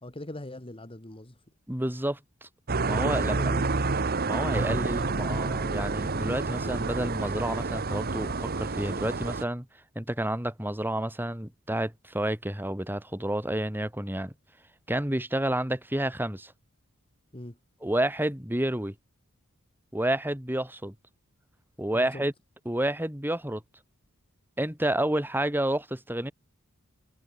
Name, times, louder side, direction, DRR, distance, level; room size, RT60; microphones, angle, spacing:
voice 1, 0.0-1.3 3.1-3.7 4.8-5.3 17.3-17.6 21.9-22.2, left 1 dB, 25° left, 2.1 m, -41 dB
voice 2, 1.7-2.5 2.8-3.4 4.3-9.7 9.9-14.3 14.9-16.5 17.8-18.9 19.9-20.9 21.8-22.3 22.6-23.6 24.6-26.3, right 1 dB, 10° right, 2.7 m, -30 dB
sound 1, 2.7-9.4, right 3 dB, 45° right, 1.2 m, -29 dB
head